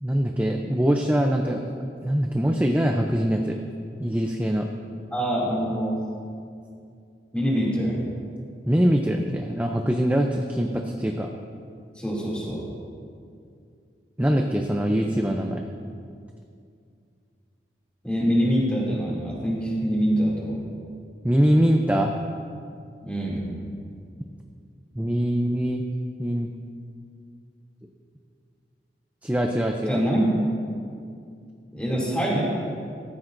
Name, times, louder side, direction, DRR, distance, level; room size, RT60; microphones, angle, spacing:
voice 1, 0.0-1.7 2.0-3.6 4.0-4.7 8.7-11.3 14.2-15.6 21.2-22.2 25.0-25.8 26.2-26.5 29.2-30.0, equal, 10° right, 2 dB, 0.5 m, -23 dB
voice 2, 5.1-6.0 7.3-8.0 11.9-12.6 18.0-20.6 23.0-23.5 29.9-30.3 31.7-32.4, equal, 5° left, -5 dB, 2.7 m, -24 dB
15.5 x 14.0 x 2.6 m, 2.4 s
head